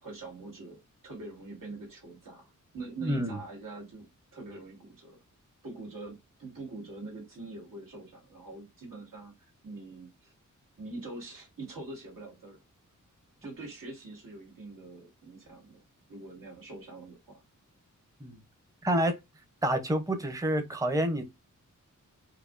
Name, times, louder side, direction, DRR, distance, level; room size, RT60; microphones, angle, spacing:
voice 1, 0.0-5.2 5.6-10.3 10.8-12.6 13.4-15.8 16.1-17.4, right 3 dB, 90° right, 2.0 m, -44 dB
voice 2, 3.0-3.4 18.2-18.4 18.8-19.1 19.6-21.3, right 1 dB, 10° right, 0.5 m, -28 dB
4.6 x 2.6 x 2.4 m
wide cardioid pair, 170°, 32 cm